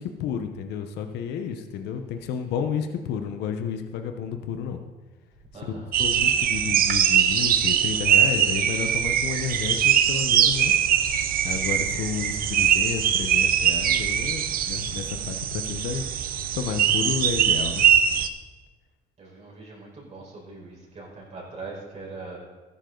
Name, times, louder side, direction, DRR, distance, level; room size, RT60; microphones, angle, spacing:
voice 1, 0.0-4.8 5.6-10.7 11.4-16.1 16.5-17.9, left 7 dB, 85° left, 6 dB, 1.1 m, -31 dB
voice 2, 5.5-5.9 11.8-12.1 19.2-22.4, right 3 dB, 40° right, -3 dB, 4.8 m, -41 dB
sound 1, 5.9-18.3, right 9 dB, 60° right, 0.8 m, -22 dB
14.0 x 11.5 x 4.0 m, 1.2 s
cardioid pair, 110°, 17 cm